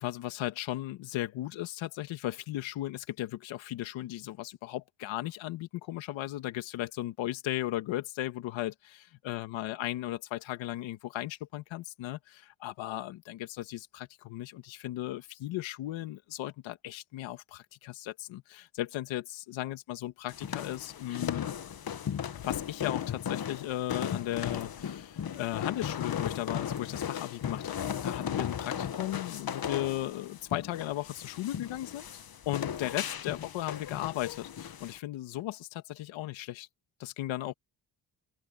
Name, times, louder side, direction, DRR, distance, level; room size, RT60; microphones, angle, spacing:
voice 1, 0.0-8.7 9.2-21.6 22.3-32.1 32.5-36.7 37.0-37.5, left 15 dB, 90° left, 1.9 m, -36 dB
sound 1, 20.3-35.0, left 8 dB, 50° left, 1.6 m, -36 dB
open air
supercardioid pair, 60°, 45 cm